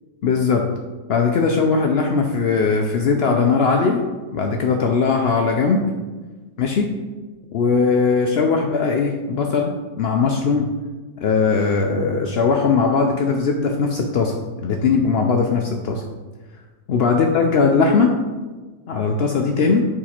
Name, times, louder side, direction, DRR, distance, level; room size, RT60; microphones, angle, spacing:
voice 1, 0.2-0.7 1.1-4.0 4.3-5.9 6.6-6.9 7.5-10.7 11.2-16.0 16.9-18.2 18.9-19.8, left 4 dB, 75° left, 2 dB, 0.5 m, -19 dB
7.2 x 5.0 x 4.3 m, 1.3 s
omnidirectional pair, 1.8 m